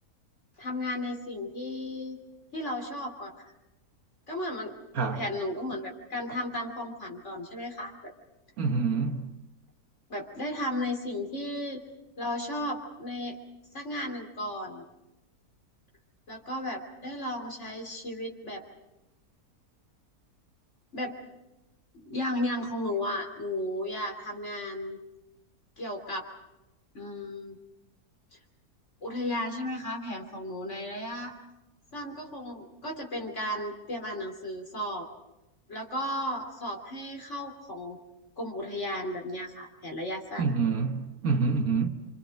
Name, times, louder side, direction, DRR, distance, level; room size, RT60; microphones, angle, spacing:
voice 1, 0.6-2.2 2.5-3.5 4.3-4.7 5.1-8.1 10.1-11.8 12.2-13.4 13.7-14.8 16.3-18.6 20.9-21.2 21.9-25.0 25.8-26.3 26.9-27.6 29.0-31.3 31.9-35.1 35.7-38.0 38.4-40.5, left 1 dB, 45° left, 3.4 m, -34 dB
voice 2, 8.6-9.3 40.4-41.9, right 4 dB, 65° right, 1.7 m, -27 dB
26.5 x 26.0 x 5.2 m
omnidirectional pair, 1.7 m